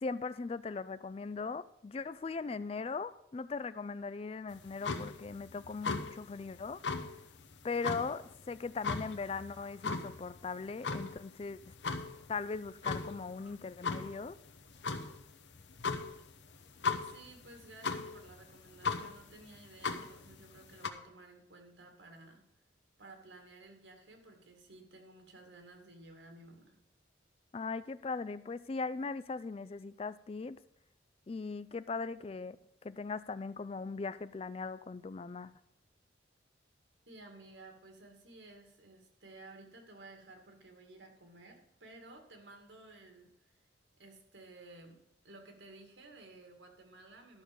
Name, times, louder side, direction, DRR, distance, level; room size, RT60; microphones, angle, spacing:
voice 1, 0.0-6.8 7.6-11.7 12.3-14.4 27.5-30.6 31.3-32.6 32.8-35.5, left 4 dB, 30° left, 15 dB, 0.3 m, -39 dB
sound 1, 4.5-20.9, left 4 dB, 70° left, 1.0 m, -39 dB
voice 2, 16.8-22.4 23.0-26.8 37.1-43.6 44.0-45.0 45.2-47.4, right 2 dB, 75° right, 4 dB, 2.2 m, -55 dB
12.5 x 6.4 x 5.2 m, 0.84 s
head